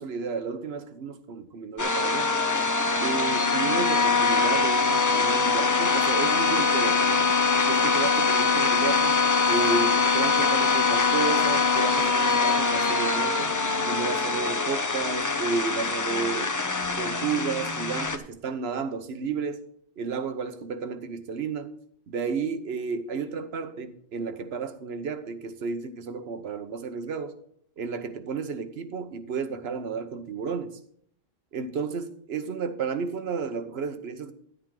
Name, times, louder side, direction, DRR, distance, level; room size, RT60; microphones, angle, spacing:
voice 1, 0.0-2.3 3.0-7.3 7.7-9.2 9.5-13.5 13.8-16.5 17.0-19.6 20.0-21.7 22.1-27.3 27.8-30.8 31.5-34.3, right 5 dB, 75° right, 1.1 m, -32 dB
sound 1, 1.8-18.2, left 4 dB, 20° left, 0.5 m, -23 dB
10.5 x 10.0 x 3.8 m
omnidirectional pair, 1.1 m